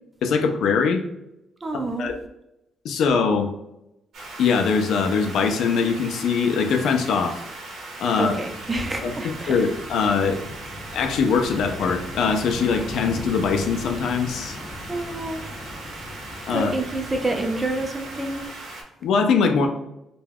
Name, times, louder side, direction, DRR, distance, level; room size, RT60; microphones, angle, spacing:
voice 1, 0.2-1.0 2.0-2.2 2.8-3.5 4.4-7.4 8.0-8.4 9.0-10.4 10.9-14.6 16.5-16.7 19.0-19.7, left 5 dB, 75° left, 6 dB, 0.4 m, -22 dB
voice 2, 1.6-2.1 8.2-9.6 14.9-15.4 16.5-18.5, right 2 dB, 25° right, 3 dB, 0.5 m, -28 dB
sound 1, 4.1-18.8, right 2 dB, 70° right, 0.8 m, -39 dB
Wind / Waves surf, 8.5-18.5, left 1 dB, 40° left, 0.7 m, -39 dB
2.3 x 2.2 x 3.3 m, 0.87 s
cardioid pair, 90°, 0 cm